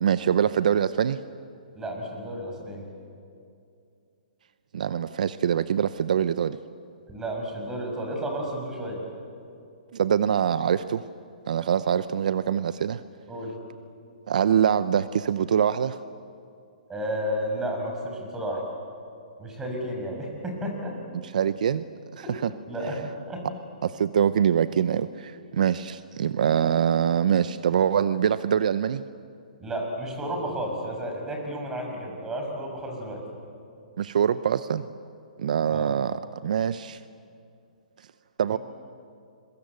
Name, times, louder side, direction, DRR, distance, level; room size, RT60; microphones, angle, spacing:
voice 1, 0.0-1.2 4.7-6.6 9.9-11.0 11.5-13.0 14.3-16.0 21.3-21.8 22.2-22.5 23.8-29.0 34.0-34.9 35.4-37.0 38.4-38.6, right 8 dB, 70° right, 14 dB, 0.7 m, -24 dB
voice 2, 1.7-2.8 7.1-9.0 13.3-13.6 16.9-18.6 19.4-21.0 22.2-23.5 29.6-33.2 35.7-35.9, equal, 10° right, 1 dB, 5.9 m, -32 dB
29.0 x 23.0 x 8.2 m, 2.4 s
hypercardioid pair, 145°, 4 cm